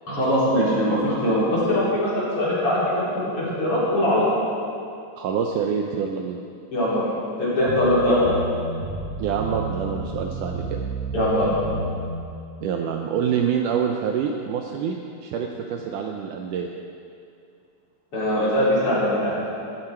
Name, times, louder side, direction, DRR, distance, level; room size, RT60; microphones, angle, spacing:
voice 1, 0.1-2.8 3.1-4.2 6.7-7.0 7.4-8.3 11.1-11.5 18.1-19.4, left 1 dB, 35° left, -9 dB, 4.6 m, -21 dB
voice 2, 5.2-6.4 9.2-10.8 12.6-16.7, right 7 dB, 90° right, 2 dB, 1.7 m, -26 dB
sound 1, 7.7-12.2, right 2 dB, 55° right, 4.0 m, -31 dB
14.5 x 12.5 x 4.5 m, 2.5 s
omnidirectional pair, 4.5 m